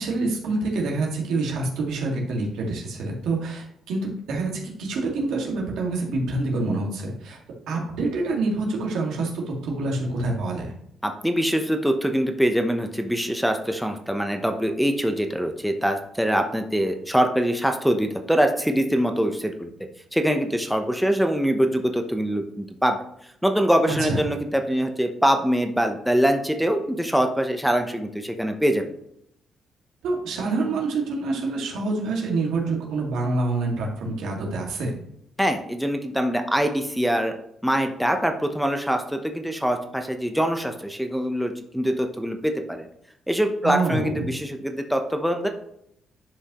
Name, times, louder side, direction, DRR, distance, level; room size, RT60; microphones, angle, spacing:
voice 1, 0.0-7.4 7.7-10.7 23.9-24.2 30.0-34.9 43.6-44.3, right 3 dB, 85° right, -1 dB, 2.0 m, -26 dB
voice 2, 11.0-19.7 20.1-23.0 23.4-28.8 35.4-37.3 37.6-42.9 43.3-45.5, equal, ahead, 4 dB, 0.8 m, -23 dB
10.0 x 5.4 x 3.0 m, 0.73 s
cardioid pair, 90°, 0 cm